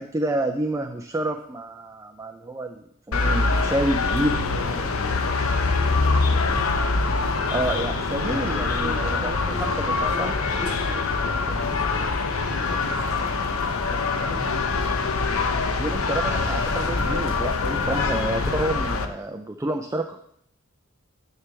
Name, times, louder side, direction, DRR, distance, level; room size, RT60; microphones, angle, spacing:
voice 1, 0.0-4.4 7.5-10.3 15.8-20.2, right 1 dB, 15° right, 4 dB, 0.4 m, -29 dB
sound 1, 3.1-19.1, left 3 dB, 85° left, 0.8 m, -24 dB
voice 2, 4.0-6.7 7.7-13.3 13.8-15.7, equal, 30° right, -1 dB, 2.7 m, -39 dB
9.8 x 3.4 x 6.9 m, 0.71 s
head